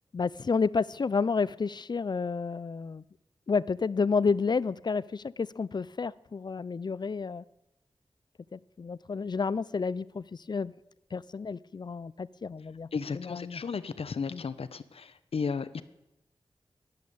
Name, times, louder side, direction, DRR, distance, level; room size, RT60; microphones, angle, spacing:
voice 1, 0.1-3.0 3.5-7.4 8.5-10.7 11.1-12.9 13.1-13.6 14.3-14.4, left 5 dB, 45° left, 19 dB, 0.4 m, -30 dB
voice 2, 12.9-15.8, left 5 dB, 75° left, 14 dB, 0.8 m, -34 dB
11.5 x 11.0 x 8.4 m, 0.94 s
wide cardioid pair, 105°, 10 cm